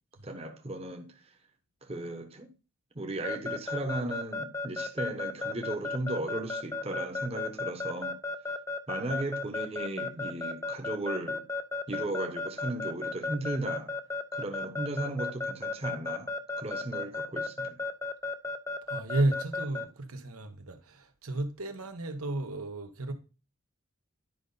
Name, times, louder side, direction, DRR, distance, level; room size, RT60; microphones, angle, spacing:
voice 1, 0.2-1.1 1.8-2.5 2.9-8.2 8.9-11.5 11.9-13.9 14.3-17.8, right 1 dB, 30° right, 1.0 m, -36 dB
Keyboard (musical) / Alarm, 3.2-19.9, left 3 dB, 15° left, 0.5 m, -33 dB
voice 2, 18.9-23.1, right 2 dB, 85° right, 1.3 m, -32 dB
10.5 x 5.2 x 4.0 m
head